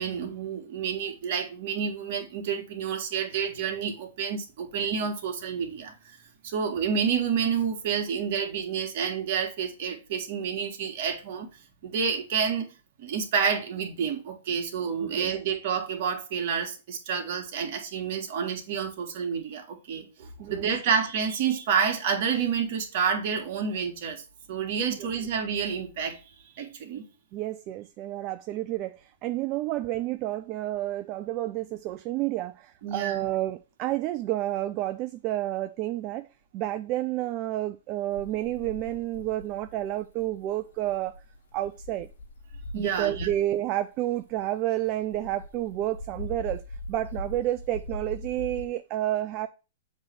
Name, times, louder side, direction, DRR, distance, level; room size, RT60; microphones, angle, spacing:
voice 1, 0.0-6.2 6.4-11.5 11.8-12.7 13.0-24.2 24.5-26.2 26.6-27.0 32.8-33.2 42.7-43.3, right 6 dB, 55° right, 1.9 m, -29 dB
voice 2, 27.3-36.3 36.5-41.1 41.5-42.1 42.7-46.6 46.9-49.5, right 14 dB, 35° right, 0.4 m, -30 dB
sound 1, 38.1-43.6 44.1-48.6, left 1 dB, 75° left, 1.5 m, -41 dB
7.3 x 3.2 x 6.2 m
hypercardioid pair, 125°, 0 cm